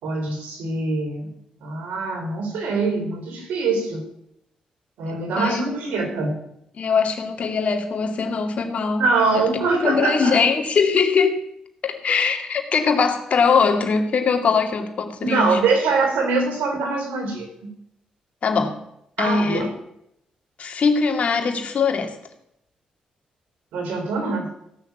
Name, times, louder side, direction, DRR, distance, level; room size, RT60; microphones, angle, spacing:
voice 1, 0.0-1.3 1.6-4.0 5.0-6.3 9.0-10.4 15.2-17.7 19.2-19.7 23.7-24.5, right 3 dB, 85° right, 3 dB, 3.9 m, -23 dB
voice 2, 5.4-5.7 6.7-9.0 9.3-9.5 9.8-11.4 11.8-15.6 18.4-18.8 19.2-19.7 20.6-22.2, left 5 dB, 60° left, 4 dB, 2.5 m, -21 dB
16.0 x 6.8 x 8.1 m, 0.77 s
cardioid pair, 65°, 3 cm